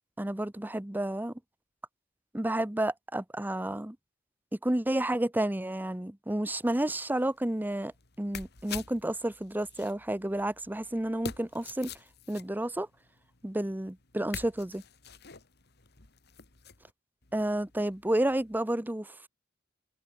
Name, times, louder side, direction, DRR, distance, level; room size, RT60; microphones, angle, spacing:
voice 1, 0.2-1.3 2.3-4.0 4.6-7.9 8.2-11.9 12.3-12.9 13.4-14.8 17.3-19.3, right 1 dB, 10° right, 0.7 m, -31 dB
sound 1, 6.5-16.9 17.2-18.6, left 6 dB, 60° left, 2.6 m, -48 dB
head